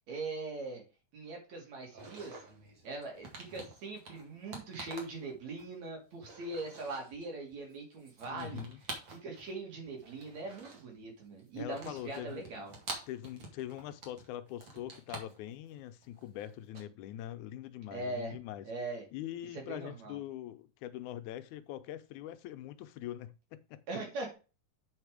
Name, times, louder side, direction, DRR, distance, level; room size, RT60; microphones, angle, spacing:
voice 1, 0.1-0.8 1.1-2.4 2.8-8.7 9.1-12.8 17.9-18.3 18.6-19.0 19.5-20.2 23.9-24.3, right 3 dB, 65° right, 3.8 m, -41 dB
sound 1, 1.9-5.9 6.2-7.2 7.5-9.6 9.8-11.0 11.4-16.8, right 2 dB, 40° right, 2.5 m, -48 dB
voice 2, 8.3-8.8 11.5-12.4 13.1-18.7 19.1-23.8, left 12 dB, 80° left, 2.1 m, -43 dB
8.0 x 5.1 x 4.9 m
omnidirectional pair, 3.5 m